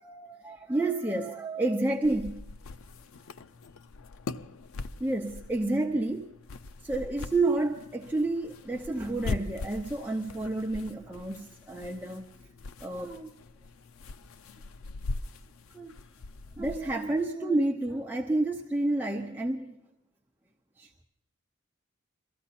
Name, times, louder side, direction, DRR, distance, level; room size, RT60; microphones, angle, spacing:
voice 1, 0.0-2.4 5.0-6.3 6.8-12.3 12.8-13.3 15.7-15.9 16.6-19.8 20.8-20.9, right 2 dB, 10° right, 0 dB, 0.7 m, -30 dB
sound 1, 2.0-17.2, left 3 dB, 85° left, 0.5 m, -41 dB
23.0 x 14.5 x 4.2 m, 0.84 s
head